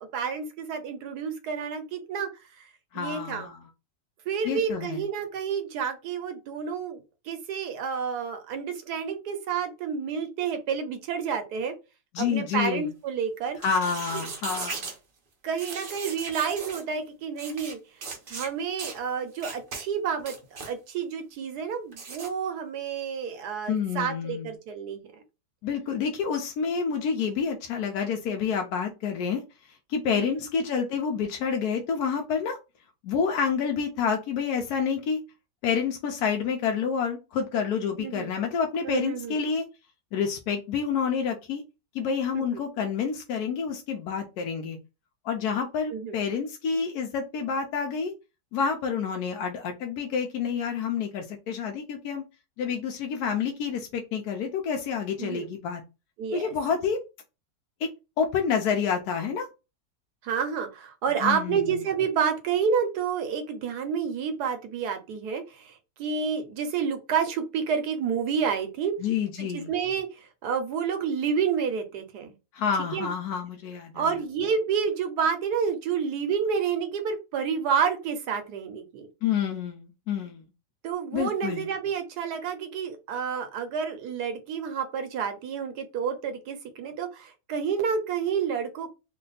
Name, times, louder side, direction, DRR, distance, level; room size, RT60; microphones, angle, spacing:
voice 1, 0.1-2.3 2.6-2.7 2.9-3.5 4.3-11.7 12.2-13.6 14.1-14.2 15.4-17.8 18.3-25.2 30.2-30.3 38.0-38.3 38.8-39.4 42.3-42.4 45.9-46.2 55.2-55.5 56.2-56.5 60.2-68.9 69.4-72.3 72.9-73.1 73.9-79.1 80.8-88.9, right 6 dB, 70° right, 7 dB, 1.1 m, -29 dB
voice 2, 2.9-3.6 4.4-5.0 12.1-12.9 13.6-14.9 23.7-24.5 25.6-29.4 29.9-32.6 33.0-35.2 35.6-39.6 40.1-41.6 41.9-44.8 45.2-48.1 48.5-52.2 52.6-55.8 56.3-57.0 57.8-57.9 58.2-59.5 61.2-61.8 69.0-69.7 72.5-74.1 79.2-80.4 81.1-81.6, left 6 dB, 70° left, 3 dB, 1.0 m, -28 dB
sound 1, 13.5-15.0 15.6-16.8 17.4-17.7 18.0-18.5 18.8-19.0 19.4-19.8 20.2-20.7 21.9-22.3, right 4 dB, 50° right, 0.6 m, -37 dB
3.3 x 2.2 x 3.9 m, 0.28 s
omnidirectional pair, 1.9 m